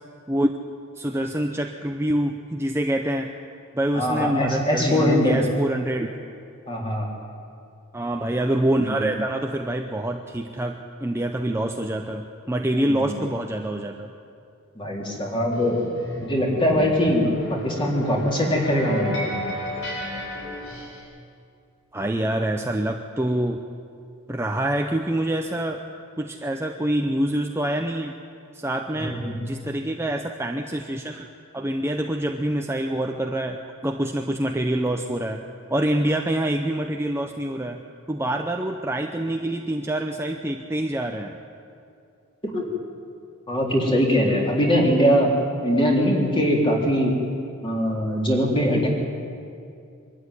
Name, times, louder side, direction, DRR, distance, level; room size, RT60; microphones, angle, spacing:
voice 1, 1.0-3.3 3.7-6.1 7.9-14.1 21.9-23.6 24.3-25.8 26.2-28.2 28.5-29.2 29.4-31.3 31.5-35.4 35.7-37.8 38.1-41.4, right 1 dB, 10° right, 3 dB, 0.7 m, -26 dB
voice 2, 3.9-5.4 6.7-7.1 13.0-13.2 14.8-15.8 16.2-19.2 29.0-29.3 42.5-42.7 43.5-45.3 45.6-47.1 47.6-48.9, equal, 25° left, -1 dB, 3.6 m, -21 dB
sound 1, 15.5-21.0, equal, 65° left, 7.7 m, -33 dB
23.5 x 13.0 x 9.9 m, 2.4 s
head